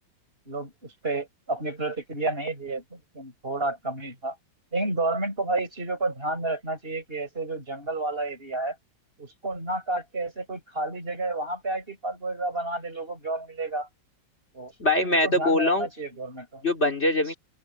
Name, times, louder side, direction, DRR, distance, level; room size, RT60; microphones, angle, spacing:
voice 1, 0.5-4.4 4.7-8.8 9.2-13.9 14.5-14.7 15.0-16.6, right 2 dB, 30° right, 6.2 m, -31 dB
voice 2, 14.8-15.9 16.6-17.3, left 1 dB, 35° left, 3.1 m, -22 dB
open air
omnidirectional pair, 2.1 m